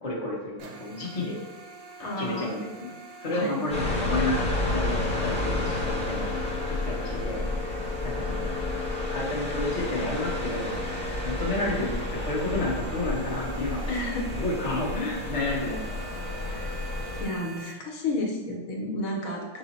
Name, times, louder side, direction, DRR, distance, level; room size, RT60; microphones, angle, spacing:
voice 1, 0.0-1.4 2.1-2.9 3.2-6.3 6.6-8.5 9.1-10.7 11.2-13.8 14.4-15.8, left 2 dB, 30° left, -4 dB, 0.8 m, -31 dB
sound 1, 0.6-17.7, right 3 dB, 70° right, 1.0 m, -46 dB
voice 2, 2.0-2.4 3.3-3.5 13.9-14.3 16.5-16.7 17.2-19.6, left 2 dB, 80° left, 0 dB, 1.2 m, -31 dB
sound 2, 3.7-17.2, left 2 dB, 10° left, 0.4 m, -30 dB
5.8 x 2.0 x 4.0 m, 1.2 s
omnidirectional pair, 1.5 m